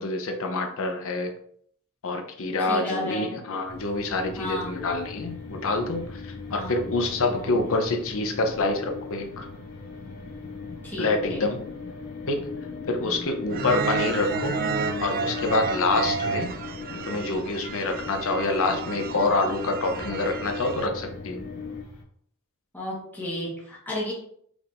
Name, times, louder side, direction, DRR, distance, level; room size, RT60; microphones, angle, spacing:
voice 1, 0.0-1.3 2.0-9.5 11.0-11.6 12.3-12.4 12.9-14.6 15.0-16.5 17.0-21.4, left 2 dB, 65° left, 4 dB, 0.7 m, -26 dB
voice 2, 2.6-3.4 4.4-4.8 6.5-6.9 7.3-7.6 10.8-11.5 13.0-13.3 22.7-24.1, left 1 dB, 10° left, -6 dB, 1.3 m, -34 dB
sound 1, 3.6-22.0, left 1 dB, 85° left, 1.2 m, -46 dB
sound 2, 4.2-21.8, left 5 dB, 40° left, 0.3 m, -38 dB
sound 3, 13.5-20.9, right 5 dB, 40° right, 0.3 m, -31 dB
4.7 x 3.6 x 2.5 m, 0.64 s
head